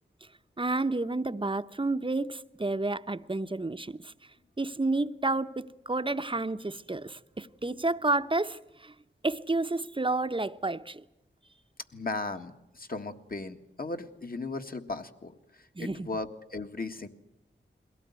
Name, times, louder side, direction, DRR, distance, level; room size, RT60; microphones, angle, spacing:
voice 1, 0.6-4.1 4.6-8.9 9.2-11.0 15.7-16.1, right 2 dB, 25° right, 0.8 m, -30 dB
voice 2, 11.9-17.1, left 3 dB, 45° left, 1.7 m, -37 dB
22.0 x 17.5 x 9.5 m
cardioid pair, 50°, 20 cm